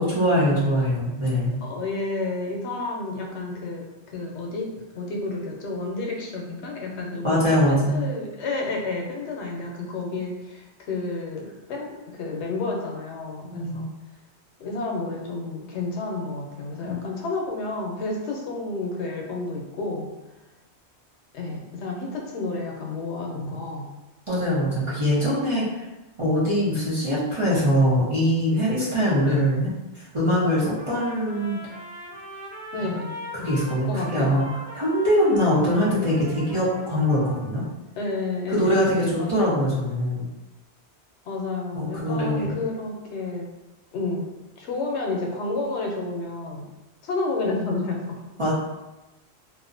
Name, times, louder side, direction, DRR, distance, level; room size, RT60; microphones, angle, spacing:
voice 1, 0.0-1.5 7.2-8.0 13.4-13.8 16.8-16.9 24.3-25.9 26.2-29.7 29.9-31.6 32.8-32.9 33.3-34.5 34.7-37.6 38.5-40.3 41.7-42.6 48.4-48.5, equal, 35° right, -9 dB, 0.6 m, -22 dB
voice 2, 1.6-13.9 14.6-20.1 21.3-23.9 32.7-33.2 33.8-34.4 38.0-39.3 41.3-43.5 43.9-46.7 47.0-48.2, left 3 dB, 85° left, 0 dB, 0.9 m, -30 dB
Trumpet, 30.8-37.7, equal, 5° left, 0.7 m, -40 dB
2.5 x 2.0 x 2.5 m, 1.0 s
omnidirectional pair, 1.1 m